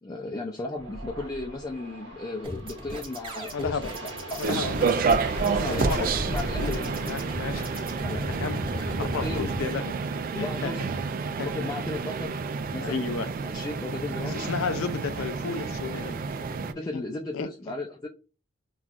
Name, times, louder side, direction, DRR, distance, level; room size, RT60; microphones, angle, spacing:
voice 1, 0.0-4.9 5.4-6.9 8.0-8.3 9.2-9.5 10.4-10.8 11.4-12.4 12.7-13.2 13.4-14.4 16.6-18.1, left 2 dB, 20° left, 0.4 m, -35 dB
sound 1, 0.8-9.4, right 1 dB, 65° right, 1.4 m, -40 dB
sound 2, 2.4-9.7, equal, 25° right, 1.4 m, -37 dB
voice 2, 3.5-3.9 4.4-4.8 5.7-6.1 6.6-6.7 7.0-7.9 8.4-10.0 10.3-10.7 11.4-11.5 12.8-13.3 14.2-16.2 16.9-17.0 17.3-17.5, left 5 dB, 85° left, 0.4 m, -33 dB
sound 3, 4.4-16.7, right 4 dB, 45° right, 0.4 m, -29 dB
5.6 x 2.3 x 2.4 m
head